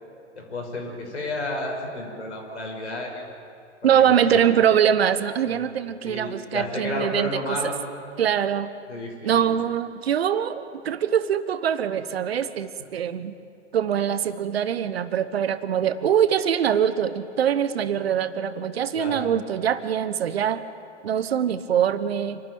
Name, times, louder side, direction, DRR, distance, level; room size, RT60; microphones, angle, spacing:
voice 1, 0.3-3.2 3.8-4.4 5.5-5.6 6.0-7.7 8.9-9.3 18.9-19.3, left 1 dB, 75° left, 0 dB, 6.4 m, -32 dB
voice 2, 3.8-7.7 8.2-8.7 9.2-13.3 13.7-20.6 21.0-22.4, right 9 dB, 60° right, 13 dB, 1.1 m, -23 dB
27.0 x 13.0 x 9.4 m, 2.4 s
figure-of-eight pair, 100°, 35 cm